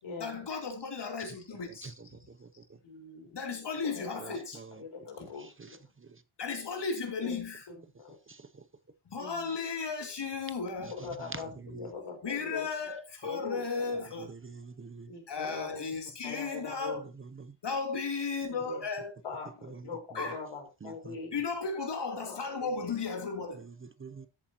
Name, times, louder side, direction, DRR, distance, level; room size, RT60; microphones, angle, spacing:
voice 1, 0.2-2.2 3.3-4.6 5.2-5.3 6.4-7.7 9.1-11.0 12.2-14.3 15.3-17.0 17.6-19.2 20.1-20.4 21.3-23.6, left 4 dB, 55° left, 3.1 m, -35 dB
voice 2, 2.8-3.4 3.9-4.4 4.8-5.5 7.2-7.3 8.0-8.1 9.2-9.4 11.0-12.7 13.2-14.1 15.1-15.8 16.2-17.0 18.6-18.8 19.2-21.3 22.3-22.9, left 5 dB, 90° left, 4.6 m, -41 dB
voice 3, 4.2-4.7 5.2-5.8 8.3-8.5 10.8-10.9 11.2-11.9 14.3-15.1 17.4-17.5 19.6-19.9 20.8-21.2 24.0-24.3, right 4 dB, 25° right, 0.6 m, -45 dB
13.5 x 8.5 x 2.9 m
wide cardioid pair, 120°, 48 cm